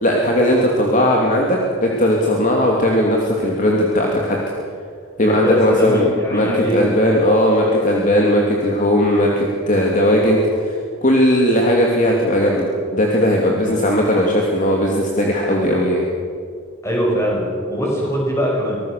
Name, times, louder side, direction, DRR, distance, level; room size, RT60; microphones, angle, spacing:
voice 1, 0.0-4.4 5.2-16.0, equal, 40° left, -1 dB, 2.9 m, -17 dB
voice 2, 5.2-6.8 13.6-13.7 16.8-18.8, equal, 15° left, -3 dB, 7.7 m, -21 dB
25.0 x 19.5 x 6.8 m, 2.2 s
head